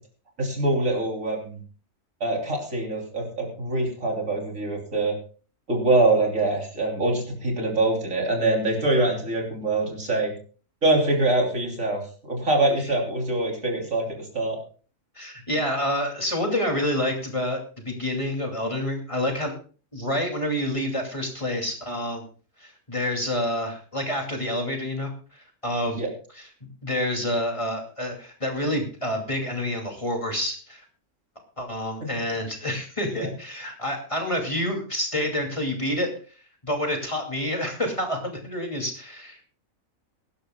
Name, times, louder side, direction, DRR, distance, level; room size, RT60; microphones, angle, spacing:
voice 1, 0.4-1.6 2.2-5.2 5.7-10.3 10.8-14.6 26.0-26.1 33.2-33.3, right 2 dB, 70° right, 0 dB, 3.7 m, -24 dB
voice 2, 15.2-19.5 19.9-22.2 22.6-26.0 26.3-30.8 31.6-36.1 36.6-39.4, left 1 dB, 25° left, 1 dB, 2.6 m, -28 dB
23.0 x 11.5 x 2.3 m, 0.38 s
omnidirectional pair, 1.4 m